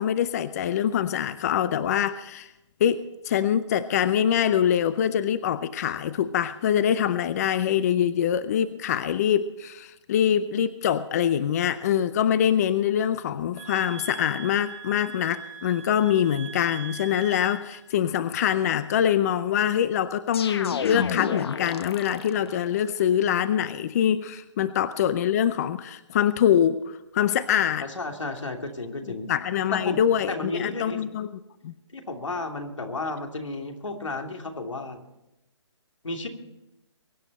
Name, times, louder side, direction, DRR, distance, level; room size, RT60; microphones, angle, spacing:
voice 1, 0.0-2.5 2.8-27.8 29.3-31.3 31.6-31.7, left 9 dB, 35° left, 14 dB, 0.6 m, -24 dB
sound 1, 13.5-17.9, right 7 dB, 25° right, 1.7 m, -42 dB
sound 2, 20.3-22.6, left 6 dB, 55° left, 1.3 m, -30 dB
voice 2, 27.8-29.3 29.7-30.0 30.3-31.0 31.9-35.0 36.0-36.3, left 2 dB, 90° left, 3 dB, 2.9 m, -33 dB
23.0 x 9.9 x 4.2 m, 0.94 s
hypercardioid pair, 150°, 15 cm